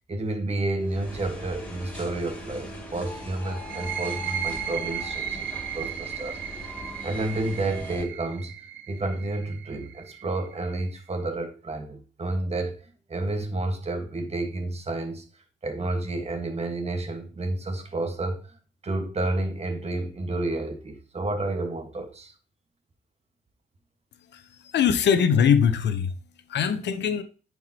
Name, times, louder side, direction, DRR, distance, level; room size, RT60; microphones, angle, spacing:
voice 1, 0.0-6.4 7.0-8.5 8.9-15.2 15.6-18.6 18.8-22.3, right 2 dB, 30° right, 1.4 m, -30 dB
sound 1, 0.8-8.0, left 1 dB, 5° left, 3.0 m, -40 dB
sound 2, 3.6-11.0, right 10 dB, 70° right, 0.7 m, -35 dB
voice 2, 24.3-26.1 26.5-27.2, left 7 dB, 60° left, 0.8 m, -22 dB
9.3 x 4.7 x 2.9 m
cardioid pair, 90°, 20 cm